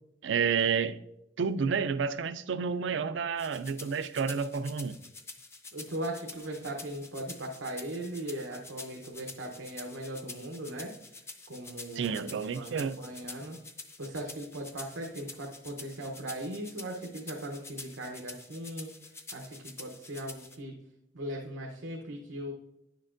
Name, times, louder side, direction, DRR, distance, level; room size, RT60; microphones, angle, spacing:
voice 1, 0.2-1.0 1.4-5.0 12.0-13.0, right 6 dB, 70° right, 13 dB, 0.4 m, -30 dB
sound 1, 3.4-20.6, left 3 dB, 15° left, 0.5 m, -47 dB
voice 2, 5.7-10.9 11.5-13.6 14.0-18.9 19.3-20.7 21.1-22.5, right 1 dB, 90° right, 0 dB, 0.9 m, -39 dB
10.0 x 6.6 x 2.5 m, 0.85 s
head